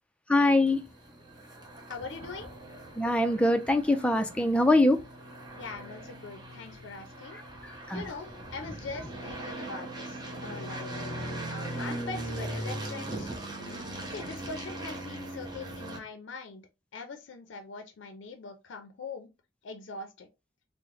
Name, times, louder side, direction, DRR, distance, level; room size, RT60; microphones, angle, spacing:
voice 1, 0.3-0.8 3.0-5.0 7.6-8.0, left 1 dB, 5° left, 0.3 m, -23 dB
sound 1, 0.7-16.0, right 1 dB, 20° right, 0.7 m, -40 dB
voice 2, 1.9-2.5 5.6-7.4 7.9-10.9 11.5-13.3 14.1-19.3 19.6-20.3, left 4 dB, 85° left, 0.5 m, -42 dB
3.6 x 2.0 x 3.1 m
head